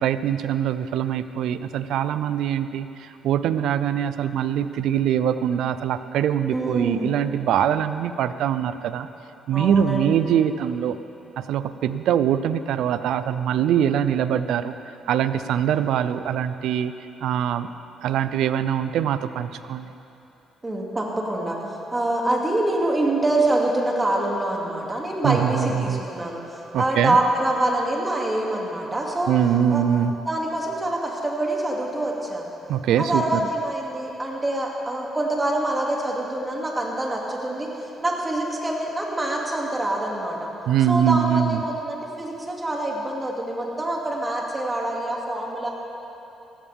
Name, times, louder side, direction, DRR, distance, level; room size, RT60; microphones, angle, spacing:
voice 1, 0.0-9.1 9.5-11.0 11.4-14.7 15.1-16.9 17.2-17.7 18.0-19.9 25.2-26.0 26.7-27.2 29.3-30.1 32.7-33.4 40.7-41.6, right 9 dB, 80° right, 12 dB, 0.5 m, -23 dB
voice 2, 6.5-7.2 9.5-10.2 20.6-29.4 29.7-29.8 30.3-32.5 33.0-37.7 38.0-40.5 40.9-45.7, right 1 dB, 20° right, -2 dB, 2.6 m, -25 dB
16.5 x 16.0 x 3.6 m, 2.9 s
cardioid pair, 90°, 0 cm